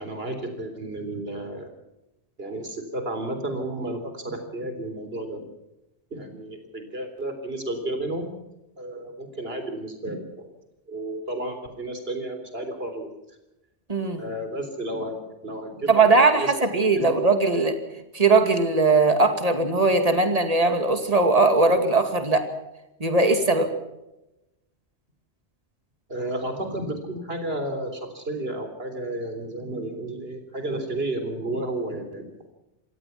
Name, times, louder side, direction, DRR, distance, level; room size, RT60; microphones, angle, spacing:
voice 1, 0.0-1.7 2.4-5.5 6.1-8.3 8.8-10.5 10.9-13.1 14.2-16.7 16.9-17.1 17.9-18.0 26.1-32.3, right 1 dB, 60° right, 7 dB, 3.9 m, -32 dB
voice 2, 13.9-14.2 15.9-17.7 18.1-22.5 23.0-23.7, right 3 dB, 35° right, 7 dB, 2.5 m, -20 dB
26.0 x 17.5 x 5.9 m, 0.94 s
omnidirectional pair, 1.2 m